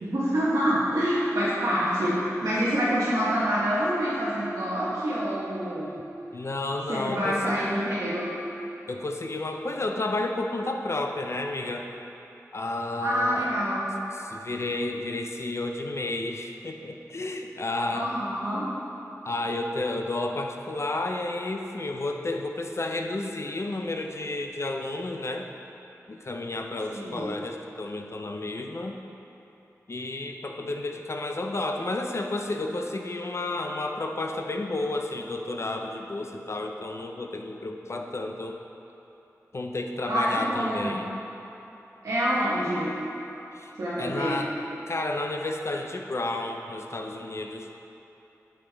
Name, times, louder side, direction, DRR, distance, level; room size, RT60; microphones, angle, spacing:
voice 1, 0.0-5.9 6.9-8.3 13.0-13.9 17.9-18.7 26.9-27.3 40.1-40.9 42.0-42.9 43.8-44.4, equal, 85° right, -10 dB, 1.0 m, -26 dB
voice 2, 6.3-7.6 8.9-11.9 12.5-13.5 14.1-18.1 19.3-25.5 26.1-29.0 29.9-38.5 39.5-41.1 43.5-43.7 44.0-44.5 44.9-47.7, left 2 dB, 50° left, 3 dB, 0.5 m, -31 dB
8.7 x 5.3 x 3.4 m, 2.9 s
wide cardioid pair, 75°, 6 cm